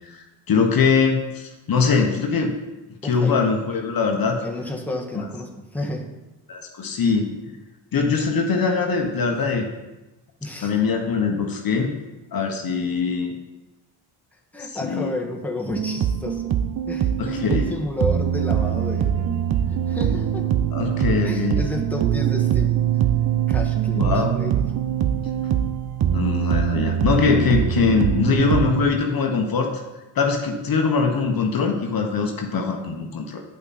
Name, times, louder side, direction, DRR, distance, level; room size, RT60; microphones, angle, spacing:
voice 1, 0.5-2.5 3.0-4.4 5.1-5.3 6.5-7.3 7.9-9.7 10.6-11.9 12.3-13.4 14.9-15.1 17.2-17.7 20.7-21.6 23.9-24.3 26.1-29.7 30.1-33.4, left 5 dB, 50° left, 2 dB, 1.2 m, -22 dB
voice 2, 3.0-3.5 4.4-6.2 10.4-10.8 14.5-16.5 16.9-19.4 19.7-20.5 21.2-23.1 23.5-24.7, left 1 dB, 5° left, -1 dB, 1.5 m, -31 dB
sound 1, 15.7-28.9, right 9 dB, 55° right, 0.8 m, -23 dB
9.9 x 5.7 x 4.2 m, 1.1 s
cardioid pair, 75°, 45 cm